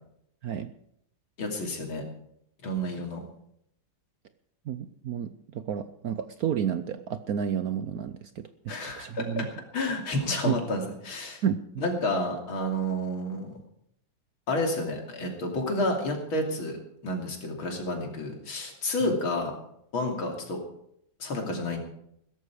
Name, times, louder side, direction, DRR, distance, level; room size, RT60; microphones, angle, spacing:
voice 1, 1.4-2.0 2.6-3.2 8.7-9.5 9.7-11.4 11.8-13.6 14.5-16.8 17.0-19.5 19.9-20.6 21.2-21.8, left 1 dB, 85° left, 2 dB, 3.6 m, -30 dB
voice 2, 4.7-9.5 10.4-10.6 11.4-11.9 19.0-19.1, right 8 dB, 65° right, 11 dB, 0.9 m, -31 dB
16.5 x 13.5 x 4.9 m, 0.73 s
omnidirectional pair, 2.2 m